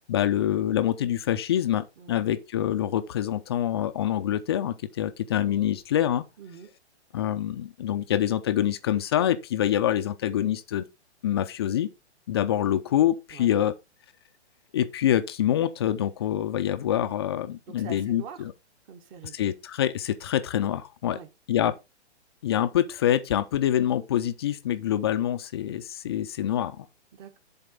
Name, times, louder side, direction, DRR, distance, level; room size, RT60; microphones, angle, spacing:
voice 1, 0.1-6.2 7.1-10.9 11.2-11.9 12.3-13.7 14.7-18.5 19.3-21.2 21.5-21.8 22.4-26.9, left 11 dB, 25° left, 0.4 m, -26 dB
voice 2, 2.0-2.3 6.4-6.7 13.3-13.5 17.7-18.5 18.9-19.3 21.1-21.3 27.1-27.4, right 7 dB, 30° right, 1.3 m, -44 dB
10.5 x 4.0 x 3.7 m
figure-of-eight pair, 125°, 35 cm